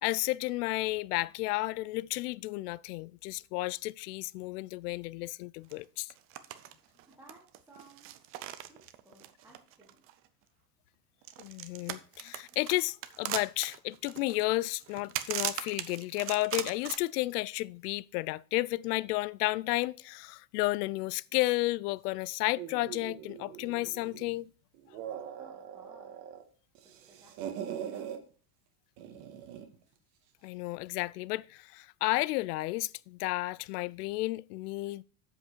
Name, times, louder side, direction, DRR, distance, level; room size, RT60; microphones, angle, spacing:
voice 1, 0.0-6.1 11.4-24.5 30.4-35.0, left 20 dB, 90° left, 0.5 m, -32 dB
sound 1, 5.7-5.8 6.1-6.7 7.0-10.3 11.2-17.0, right 13 dB, 30° right, 0.5 m, -38 dB
voice 2, 7.0-8.3 8.7-10.0 25.4-26.2 27.0-28.1, right 2 dB, 5° right, 1.5 m, -59 dB
sound 2, 22.6-24.3 24.7-26.4 26.7-28.2 29.0-29.7, right 9 dB, 60° right, 1.6 m, -42 dB
7.9 x 7.1 x 4.5 m
cardioid pair, 170°, 45 cm